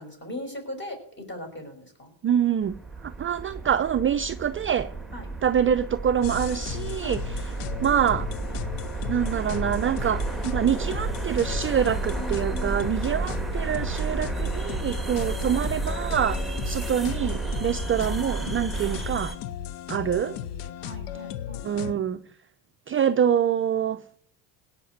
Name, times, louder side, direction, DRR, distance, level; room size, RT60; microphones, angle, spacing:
voice 1, 0.0-2.1 5.1-5.3 7.0-7.2 12.1-13.0 20.1-21.7, left 1 dB, 25° left, 6.1 m, -40 dB
voice 2, 2.2-2.7 3.0-4.9 5.4-8.3 9.1-19.3 19.9-20.4 21.6-22.2 22.9-24.0, right 8 dB, 30° right, 0.5 m, -26 dB
sound 1, 2.6-19.4, right 3 dB, ahead, 1.6 m, -32 dB
sound 2, 6.2-21.9, left 11 dB, 90° left, 0.8 m, -36 dB
17.5 x 5.9 x 8.0 m
supercardioid pair, 90°, 47 cm